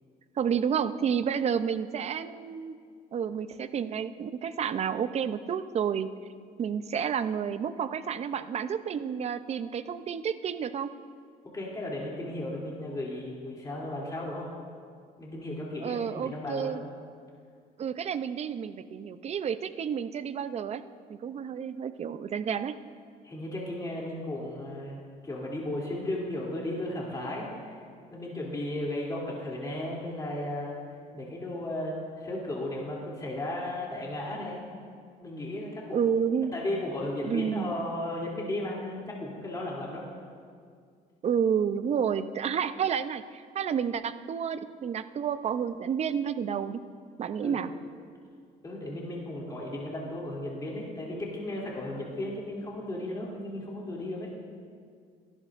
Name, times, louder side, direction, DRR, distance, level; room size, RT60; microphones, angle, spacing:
voice 1, 0.4-2.8 3.1-6.1 6.6-10.9 15.8-16.8 17.8-20.8 21.1-22.7 35.9-36.5 37.2-37.8 41.2-46.8 47.2-47.7, right 7 dB, 40° right, 12 dB, 0.6 m, -30 dB
voice 2, 11.5-14.5 15.2-16.8 23.2-27.8 28.1-30.7 31.1-34.7 35.2-36.0 36.5-40.0 47.4-47.6 48.6-54.3, left 1 dB, 20° left, -4 dB, 2.9 m, -35 dB
24.0 x 11.5 x 2.5 m, 2.1 s
cardioid pair, 110°, 17 cm